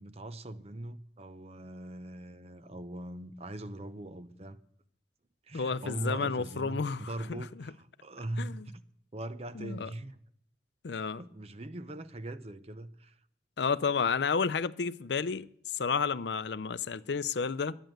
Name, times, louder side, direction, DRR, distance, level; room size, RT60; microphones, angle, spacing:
voice 1, 0.0-4.6 5.4-8.8 9.1-10.2 11.1-13.2, right 1 dB, 35° right, 0.7 m, -41 dB
voice 2, 5.5-7.4 8.4-8.7 9.5-9.9 10.8-11.2 13.6-15.5 15.7-17.8, left 5 dB, 70° left, 0.5 m, -31 dB
12.5 x 9.1 x 7.8 m
head